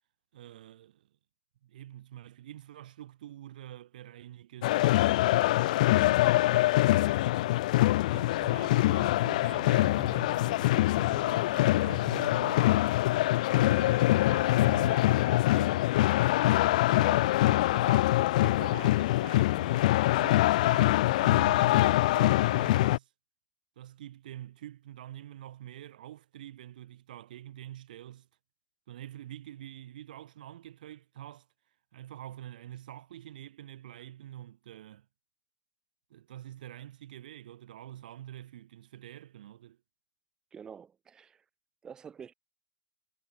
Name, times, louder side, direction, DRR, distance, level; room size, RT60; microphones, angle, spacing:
voice 1, 0.3-1.1 1.6-5.1 5.6-6.7 7.2-12.9 13.5-15.8 16.5-19.9 20.2-23.1 23.8-28.3 28.9-31.5 31.9-35.0 36.1-39.8, right 12 dB, 75° right, 4.7 m, -46 dB
sound 1, 4.6-23.0, left 16 dB, 60° left, 0.4 m, -24 dB
voice 2, 40.5-41.4 41.8-42.3, right 7 dB, 15° right, 0.9 m, -47 dB
supercardioid pair, 160°, 5 cm